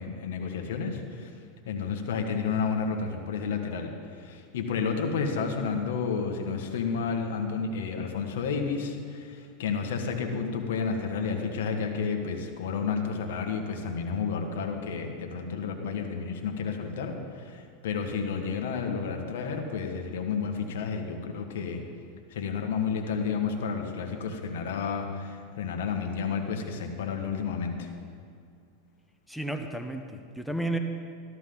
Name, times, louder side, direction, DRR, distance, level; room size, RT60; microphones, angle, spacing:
voice 1, 0.0-1.3 1.6-21.8 22.3-27.9, left 5 dB, 80° left, 4 dB, 1.7 m, -31 dB
voice 2, 29.3-30.8, right 1 dB, ahead, 4 dB, 0.9 m, -32 dB
14.5 x 14.0 x 4.0 m, 2.3 s
supercardioid pair, 120°, 0 cm